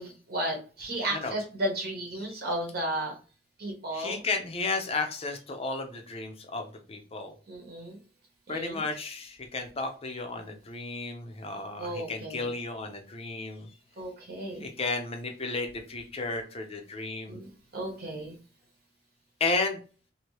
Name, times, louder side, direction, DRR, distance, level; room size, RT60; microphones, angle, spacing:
voice 1, 0.0-3.1 3.6-4.2 7.5-8.0 8.5-8.8 11.8-12.5 14.0-14.7 17.3-18.4, right 1 dB, 55° right, 0 dB, 1.0 m, -34 dB
voice 2, 3.9-7.3 8.5-13.7 14.6-17.4 19.4-19.8, left 3 dB, 35° left, 4 dB, 0.6 m, -33 dB
2.9 x 2.7 x 3.1 m, 0.37 s
head